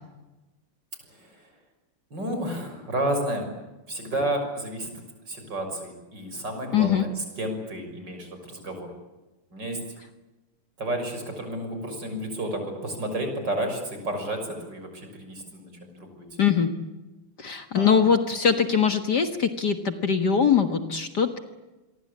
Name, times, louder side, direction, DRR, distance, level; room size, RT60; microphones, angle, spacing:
voice 1, 1.1-1.5 2.1-3.5 3.9-4.9 5.3-8.9 9.5-9.8 10.8-16.6 17.8-18.1, right 1 dB, 50° right, 5 dB, 6.9 m, -31 dB
voice 2, 6.7-7.0 16.4-16.7 17.4-21.4, left 7 dB, 50° left, 7 dB, 2.0 m, -22 dB
28.0 x 23.0 x 8.6 m, 1.1 s
omnidirectional pair, 2.4 m